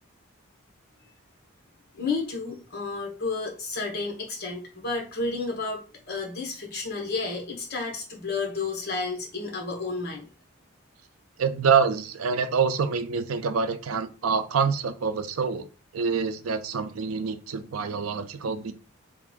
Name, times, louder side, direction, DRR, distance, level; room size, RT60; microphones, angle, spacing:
voice 1, 1.9-10.3, left 3 dB, 50° left, 0 dB, 1.3 m, -31 dB
voice 2, 11.4-18.7, right 5 dB, 85° right, 10 dB, 0.5 m, -26 dB
3.5 x 2.5 x 3.6 m, 0.34 s
head